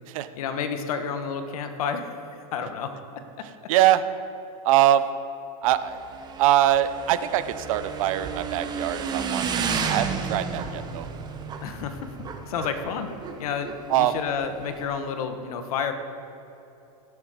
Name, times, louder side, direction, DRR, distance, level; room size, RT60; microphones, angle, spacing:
voice 1, 0.4-2.2 2.5-2.9 3.4-3.5 11.6-12.1 12.5-13.1 13.4-15.9, left 6 dB, 75° left, 7 dB, 1.2 m, -30 dB
voice 2, 3.7-4.0 4.6-5.0 5.6-6.0 6.4-9.5 9.9-11.1 13.9-14.1, right 13 dB, 65° right, 12 dB, 0.7 m, -22 dB
Motorcycle / Engine, 5.6-14.9, right 5 dB, 20° right, 0.9 m, -32 dB
17.0 x 6.9 x 5.0 m, 3.0 s
supercardioid pair, 140°, 19 cm